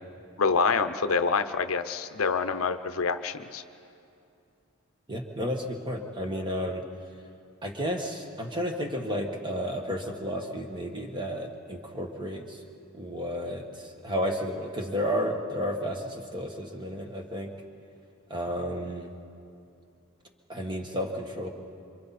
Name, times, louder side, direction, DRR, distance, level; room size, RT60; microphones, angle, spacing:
voice 1, 0.4-3.6, left 5 dB, 70° left, 10 dB, 0.7 m, -26 dB
voice 2, 5.1-6.8 7.6-12.6 12.9-17.5 18.3-19.1 20.5-21.5, equal, 20° right, 2 dB, 1.6 m, -32 dB
27.5 x 25.0 x 4.3 m, 2.5 s
head